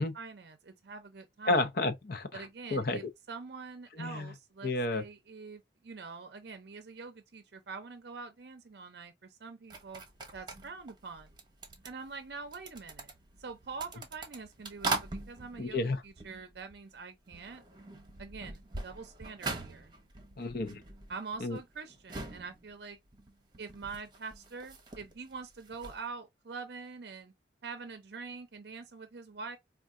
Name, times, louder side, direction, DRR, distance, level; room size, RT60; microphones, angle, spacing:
voice 1, 0.0-1.6 2.3-10.0 10.3-11.3 11.8-13.1 13.4-17.6 18.2-19.9 21.1-23.0 23.6-27.3 27.6-29.6, right 4 dB, 65° right, 0.6 m, -45 dB
voice 2, 1.5-2.5 2.7-3.0 4.0-4.3 4.6-5.0 15.6-16.0 20.4-20.8 21.4-21.6, left 2 dB, 55° left, 0.7 m, -31 dB
sound 1, 9.7-17.0 17.3-26.0, right 3 dB, 25° right, 1.0 m, -42 dB
4.6 x 2.4 x 2.4 m
head